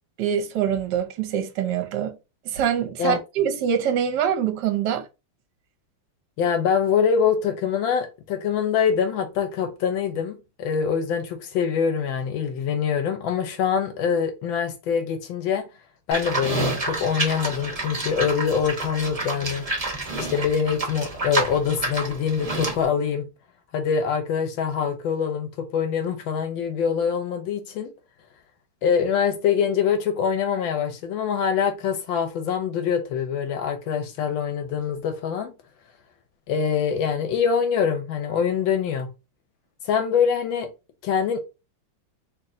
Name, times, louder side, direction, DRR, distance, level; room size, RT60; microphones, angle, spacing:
voice 1, 0.2-2.2 2.4-5.0, right 8 dB, 65° right, 1.1 m, -24 dB
voice 2, 6.4-15.7 16.1-19.6 20.2-23.3 23.7-27.9 28.8-35.5 36.5-39.1 39.8-40.7 41.0-41.4, left 7 dB, 70° left, 1.2 m, -24 dB
Livestock farm animals working animals, 16.1-22.8, right 2 dB, 35° right, 0.6 m, -29 dB
3.2 x 3.0 x 3.6 m
omnidirectional pair, 2.4 m